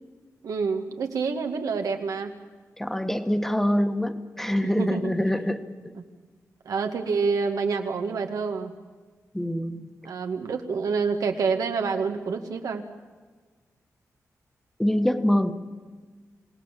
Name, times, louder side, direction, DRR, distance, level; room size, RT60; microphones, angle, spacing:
voice 1, 0.4-2.3 4.6-5.1 6.7-8.7 10.0-12.8, right 5 dB, 90° right, 5 dB, 2.1 m, -27 dB
voice 2, 2.8-5.9 9.3-9.9 14.8-15.5, equal, 5° left, 8 dB, 1.3 m, -25 dB
27.5 x 17.5 x 7.5 m, 1.4 s
wide cardioid pair, 125°, 6 cm